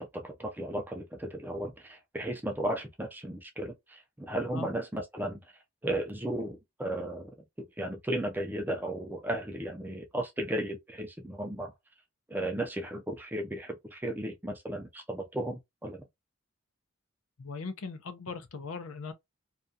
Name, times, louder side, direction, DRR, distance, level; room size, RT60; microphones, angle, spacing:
voice 1, 0.0-5.4 5.8-7.3 7.6-11.7 12.3-16.0, right 1 dB, 10° right, 0.4 m, -35 dB
voice 2, 17.4-19.1, left 4 dB, 80° left, 0.5 m, -39 dB
2.4 x 2.2 x 2.5 m
head